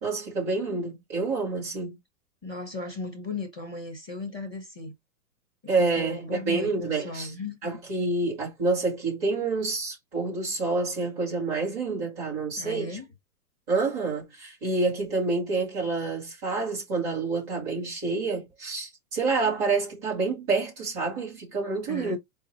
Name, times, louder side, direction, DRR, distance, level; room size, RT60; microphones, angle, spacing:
voice 1, 0.0-2.0 5.7-7.3 7.6-13.0 13.7-22.2, right 3 dB, 20° right, 1.3 m, -28 dB
voice 2, 2.4-4.9 6.0-7.6 12.6-13.0 21.9-22.2, left 3 dB, ahead, 0.5 m, -36 dB
4.4 x 2.0 x 4.3 m
hypercardioid pair, 175°, 45 cm